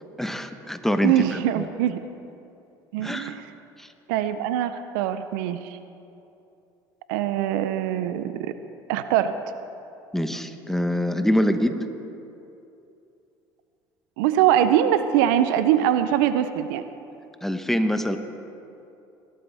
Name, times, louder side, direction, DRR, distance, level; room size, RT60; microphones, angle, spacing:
voice 1, 0.2-1.7 3.0-3.4 3.8-3.9 10.1-11.7 17.4-18.2, equal, 5° left, 8 dB, 1.0 m, -25 dB
voice 2, 1.0-2.0 2.9-3.5 4.1-5.8 7.1-8.5 8.9-9.4 14.2-16.8, right 11 dB, 80° right, 11 dB, 0.6 m, -22 dB
21.5 x 12.0 x 3.4 m, 2.8 s
hypercardioid pair, 80°, 11 cm